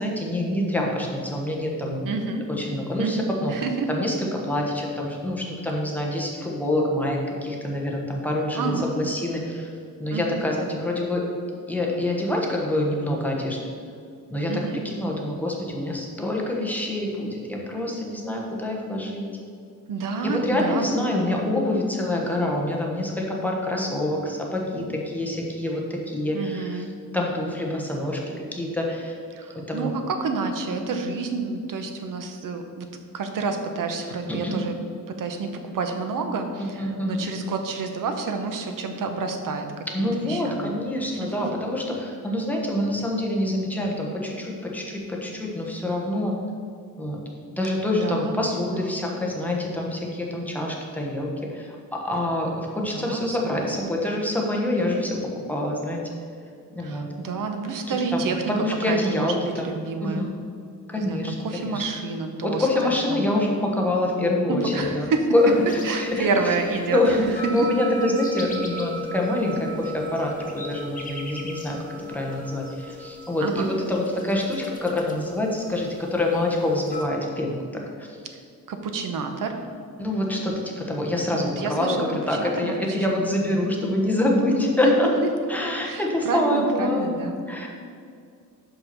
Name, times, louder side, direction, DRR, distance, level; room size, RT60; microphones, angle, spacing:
voice 1, 0.0-2.1 2.5-3.5 3.9-9.7 10.0-11.3 11.7-13.6 14.3-19.3 20.3-26.8 27.1-28.2 28.5-29.1 29.5-29.9 34.3-34.6 36.8-37.2 39.9-46.3 47.0-47.2 47.5-55.2 55.5-56.1 56.7-57.1 58.1-58.2 58.5-59.7 60.0-60.3 60.9-61.4 61.6-61.8 62.4-65.1 65.3-66.3 66.9-71.8 72.1-78.2 80.0-85.1 85.5-87.7, left 1 dB, 5° left, -2 dB, 1.1 m, -26 dB
voice 2, 2.0-2.4 3.0-4.0 8.5-9.0 10.1-10.5 14.5-14.8 19.9-20.9 26.3-26.9 29.3-32.9 33.1-34.8 35.2-39.7 40.0-40.7 41.2-41.3 48.0-48.4 48.7-49.0 52.8-53.9 56.8-58.4 58.9-60.3 60.9-62.7 63.1-63.3 64.5-65.3 65.8-67.3 73.4-73.7 78.7-79.6 80.4-80.5 81.3-82.0 82.4-83.1 83.4-83.7 84.8-84.9 85.8-87.4, right 4 dB, 70° right, 6 dB, 0.9 m, -29 dB
sound 1, 65.4-77.1, left 1 dB, 25° left, 0.9 m, -36 dB
5.8 x 5.5 x 5.9 m, 2.3 s
wide cardioid pair, 140°, 33 cm